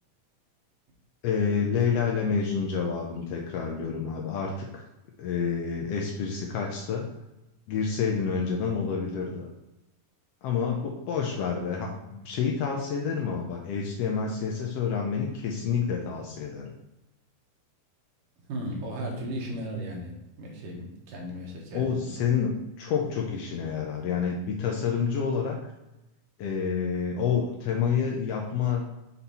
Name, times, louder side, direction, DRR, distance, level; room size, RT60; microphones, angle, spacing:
voice 1, 1.2-4.9 5.2-7.1 7.7-9.5 10.4-16.7 21.7-25.6 26.4-28.8, left 6 dB, 85° left, 0 dB, 1.4 m, -28 dB
voice 2, 18.5-20.1 20.4-22.1, right 1 dB, 85° right, -2 dB, 3.0 m, -35 dB
6.9 x 4.3 x 4.1 m, 0.93 s
omnidirectional pair, 3.7 m